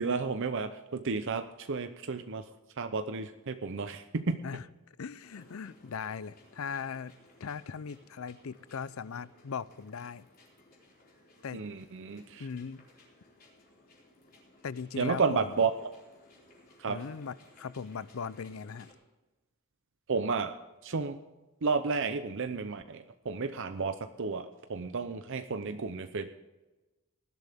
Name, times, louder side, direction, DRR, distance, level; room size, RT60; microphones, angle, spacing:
voice 1, 0.0-2.4 2.8-4.4 11.5-12.5 15.0-15.7 16.8-17.0 20.1-20.5 20.8-21.2 21.6-26.3, right 4 dB, 60° right, 9 dB, 0.7 m, -32 dB
voice 2, 4.4-7.1 7.4-10.3 11.4-11.6 12.4-12.8 14.6-15.5 16.9-18.9, left 6 dB, 75° left, 18 dB, 0.5 m, -39 dB
sound 1, 5.2-18.9, left 1 dB, 45° left, 4.2 m, -60 dB
19.5 x 12.0 x 3.6 m, 1.1 s
head